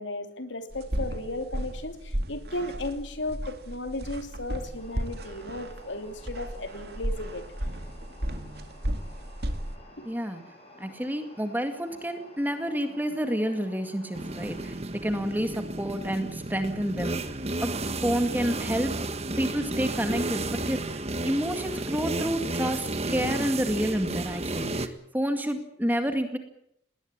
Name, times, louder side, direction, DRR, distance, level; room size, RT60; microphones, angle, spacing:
voice 1, 0.0-7.4, left 2 dB, 75° left, 8 dB, 3.0 m, -35 dB
sound 1, 0.7-9.8, right 1 dB, 55° right, 2.2 m, -34 dB
sound 2, 4.8-14.7, left 1 dB, 30° left, 6.8 m, -52 dB
voice 2, 10.0-10.4 10.8-17.2 17.6-17.7 18.0-19.0 19.4-26.4, equal, 10° right, 7 dB, 2.1 m, -29 dB
sound 3, 14.1-24.9, right 2 dB, 35° right, 1.5 m, -32 dB
20.0 x 19.0 x 8.8 m, 0.72 s
head